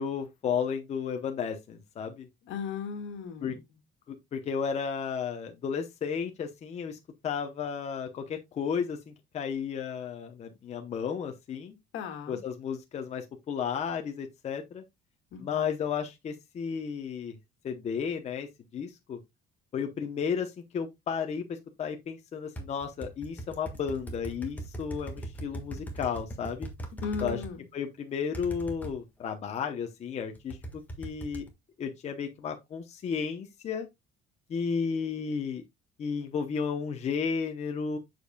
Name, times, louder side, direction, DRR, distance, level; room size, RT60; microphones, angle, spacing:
voice 1, 0.0-2.3 3.4-3.5 4.1-7.0 7.2-11.8 12.3-14.8 15.4-17.3 17.6-18.5 18.7-19.2 19.7-26.7 27.2-27.4 27.7-30.6 31.0-31.4 31.8-33.9 34.5-35.6 36.0-38.0, left 6 dB, 35° left, 0.8 m, -33 dB
voice 2, 2.4-3.6 11.9-12.4 15.3-15.7 26.9-27.7, left 6 dB, 75° left, 1.9 m, -37 dB
sound 1, 22.6-27.5 28.3-28.9 30.4-31.5, right 1 dB, 10° left, 1.5 m, -39 dB
7.7 x 6.8 x 2.2 m
cardioid pair, 170°, 20 cm